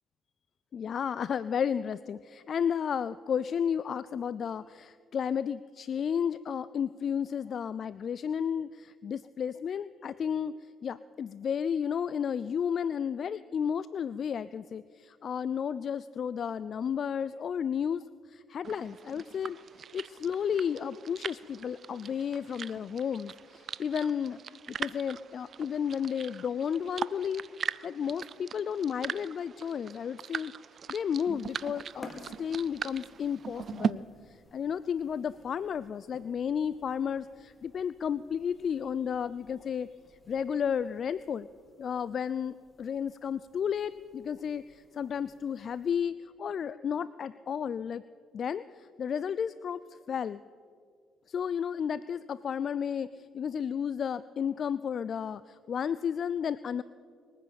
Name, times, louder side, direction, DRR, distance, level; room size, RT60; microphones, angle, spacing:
voice 1, 0.7-10.5 10.8-24.4 24.8-27.5 27.8-30.5 30.9-39.9 40.3-41.5 41.8-48.0 48.3-49.8 50.1-50.4 51.3-56.8, left 7 dB, 55° left, 17 dB, 0.3 m, -32 dB
sound 1, 18.6-33.9, right 7 dB, 55° right, 0.4 m, -40 dB
sound 2, 31.3-46.0, left 2 dB, 25° left, 2.4 m, -56 dB
21.5 x 9.5 x 7.0 m, 2.2 s
supercardioid pair, 75°, 0 cm